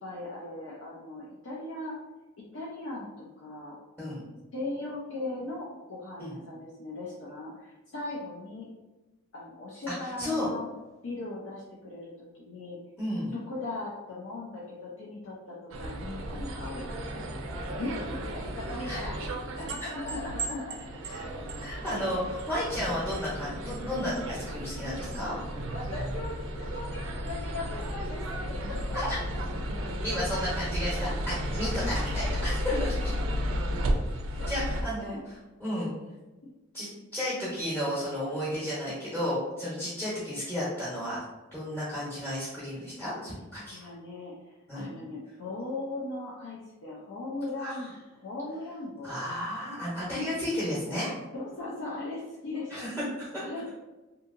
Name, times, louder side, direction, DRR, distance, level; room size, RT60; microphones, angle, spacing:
voice 1, 0.0-2.0 2.5-3.8 4.5-8.7 9.3-10.7 11.0-12.8 13.3-17.2 17.8-19.2 19.5-20.7 25.7-28.2 28.7-28.8 29.3-29.4 30.1-30.4 31.0-31.1 32.1-32.3 34.4-34.5 34.8-35.2 36.4-36.5 43.5-49.2 51.3-52.7 53.4-53.7, left 2 dB, 70° left, -6 dB, 0.5 m, -39 dB
voice 2, 9.9-10.5 13.0-13.3 18.9-19.0 19.8-19.9 21.0-21.3 21.6-25.3 28.9-29.2 30.0-33.1 34.5-35.9 36.7-41.2 41.5-43.9 44.7-44.8 47.6-47.8 49.0-51.1 52.7-53.4, left 1 dB, 5° left, -10 dB, 0.8 m, -33 dB
sound 1, 15.7-34.8, equal, 75° right, 0.4 m, -33 dB
2.7 x 2.7 x 2.5 m, 1.1 s
head